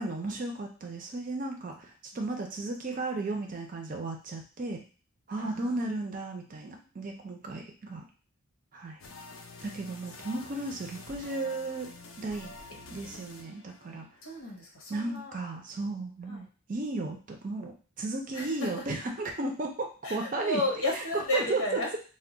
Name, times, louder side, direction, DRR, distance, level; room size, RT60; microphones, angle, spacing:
voice 1, 0.0-4.8 5.3-8.0 8.7-9.0 9.6-11.9 12.2-12.5 12.9-14.1 14.9-20.6 20.9-22.0, right 2 dB, 40° right, 3 dB, 0.4 m, -34 dB
voice 2, 5.4-5.8 6.7-6.9 14.2-15.3 16.3-16.4 18.3-18.9 20.0-21.9, left 1 dB, 80° left, -1 dB, 0.8 m, -33 dB
sound 1, 9.0-14.3, left 3 dB, 65° left, 0.5 m, -48 dB
2.2 x 2.1 x 3.7 m, 0.37 s
head